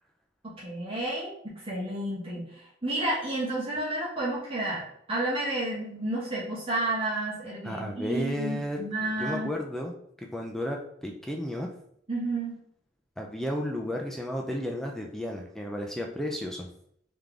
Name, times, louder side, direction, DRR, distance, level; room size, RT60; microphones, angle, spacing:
voice 1, 0.4-9.5 12.1-12.6, right 2 dB, 30° right, -7 dB, 1.5 m, -31 dB
voice 2, 7.6-9.9 10.2-11.7 13.2-16.7, equal, ahead, 0 dB, 0.4 m, -33 dB
3.7 x 3.3 x 3.5 m, 0.69 s
head